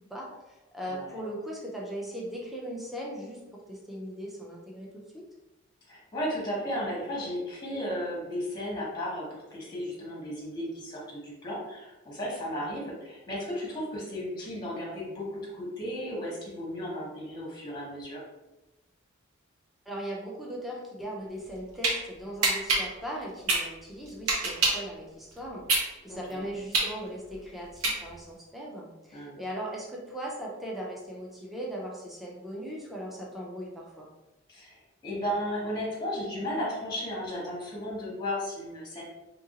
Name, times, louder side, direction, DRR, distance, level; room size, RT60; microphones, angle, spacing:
voice 1, 0.1-3.4 3.7-5.2 19.9-34.1, equal, ahead, -3 dB, 0.5 m, -39 dB
voice 2, 5.9-18.2 26.1-26.5 29.1-29.4 34.5-39.0, equal, 20° left, -5 dB, 1.0 m, -34 dB
sound 1, 21.4-21.9 22.4-24.9 25.3-28.3, right 3 dB, 90° right, 0.8 m, -26 dB
2.8 x 2.5 x 2.8 m, 0.99 s
head